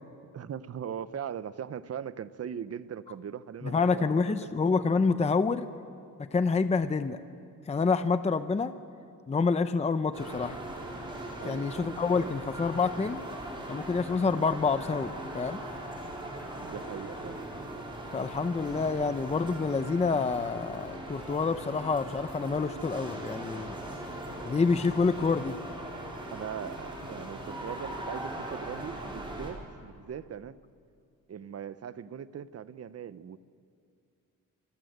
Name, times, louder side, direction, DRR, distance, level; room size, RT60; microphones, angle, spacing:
voice 1, 0.3-4.7 11.4-11.9 12.2-12.3 16.5-17.4 26.3-30.6 31.3-33.4, right 8 dB, 50° right, 14 dB, 0.8 m, -40 dB
voice 2, 3.6-5.7 6.2-7.2 7.7-8.7 9.3-10.6 11.4-13.2 13.7-15.6 18.1-23.7 24.5-25.6, left 4 dB, 20° left, 10 dB, 0.6 m, -27 dB
sound 1, 10.1-29.5, right 1 dB, 15° right, 4.8 m, -40 dB
26.0 x 26.0 x 8.0 m, 2.4 s
wide cardioid pair, 160°, 32 cm